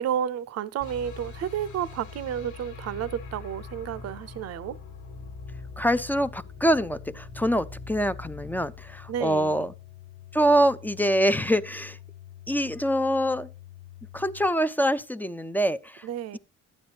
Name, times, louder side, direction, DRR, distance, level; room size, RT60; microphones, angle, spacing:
voice 1, 0.0-4.8 9.1-9.6 16.0-16.4, right 9 dB, 55° right, 0.6 m, -31 dB
sound 1, 0.8-9.9, left 2 dB, 80° left, 1.7 m, -43 dB
sound 2, 0.9-14.5, left 14 dB, 60° left, 0.8 m, -48 dB
voice 2, 5.8-9.7 10.3-12.0 12.5-13.5 14.1-16.1, equal, 5° left, 0.4 m, -25 dB
12.0 x 9.5 x 2.8 m
cardioid pair, 90°, 30 cm